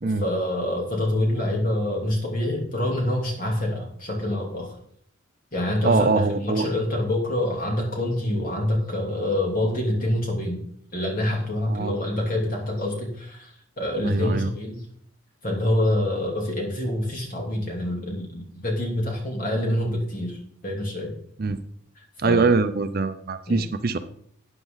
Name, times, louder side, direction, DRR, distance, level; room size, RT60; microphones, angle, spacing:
voice 1, 0.0-4.7 5.5-10.6 10.9-14.8 15.4-20.4 20.6-21.1 22.2-22.5 23.5-23.6, left 1 dB, 40° left, -1 dB, 3.2 m, -26 dB
voice 2, 5.8-6.7 11.7-12.0 14.0-14.5 21.4-21.6 22.2-24.0, right 3 dB, 45° right, 10 dB, 0.5 m, -23 dB
13.5 x 8.9 x 4.0 m, 0.65 s
head